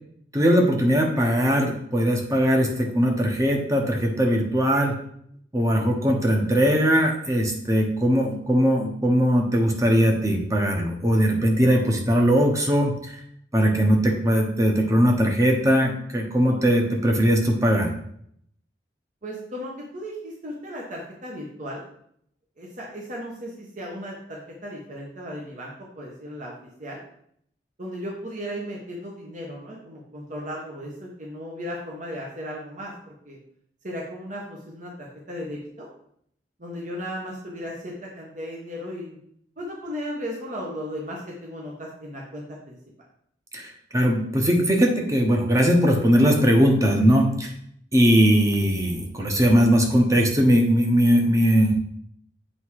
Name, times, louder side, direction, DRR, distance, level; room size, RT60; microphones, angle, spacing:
voice 1, 0.3-5.0 5.5-13.0 13.5-17.9 43.5-47.5 47.9-51.7, equal, 20° right, 1 dB, 1.1 m, -20 dB
voice 2, 19.2-21.8 22.6-26.5 26.8-27.0 27.8-33.4 33.8-35.9 36.6-39.2 39.6-42.8, equal, 45° right, -3 dB, 1.3 m, -36 dB
7.8 x 3.6 x 4.8 m, 0.68 s
head